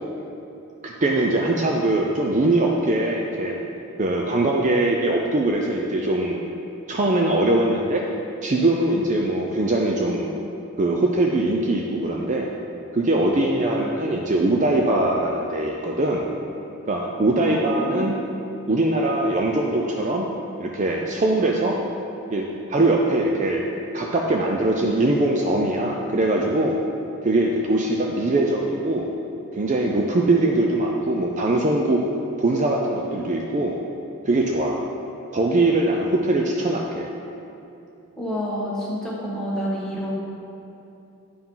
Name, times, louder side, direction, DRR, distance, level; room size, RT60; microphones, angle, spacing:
voice 1, 0.8-3.6 4.0-6.4 6.9-8.0 8.4-10.3 10.8-12.5 12.9-16.3 16.9-18.2 18.7-20.3 20.6-21.8 22.3-23.6 23.9-26.8 27.2-29.1 29.5-32.0 32.4-33.8 34.3-34.8 35.3-37.1, right 2 dB, 35° right, 0 dB, 0.4 m, -22 dB
voice 2, 17.3-18.1 36.0-36.2 38.2-40.1, equal, ahead, -6 dB, 1.4 m, -29 dB
9.2 x 4.7 x 5.5 m, 2.8 s
head